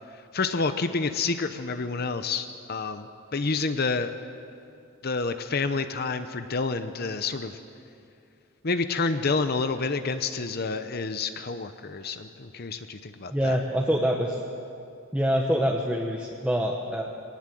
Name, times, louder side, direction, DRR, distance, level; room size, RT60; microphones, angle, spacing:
voice 1, 0.3-3.1 3.3-4.1 5.0-7.6 8.6-13.6, left 4 dB, 45° left, 9 dB, 0.8 m, -28 dB
voice 2, 13.3-14.4 15.1-17.0, equal, 5° right, -1 dB, 1.1 m, -25 dB
22.5 x 18.5 x 7.6 m, 2.5 s
head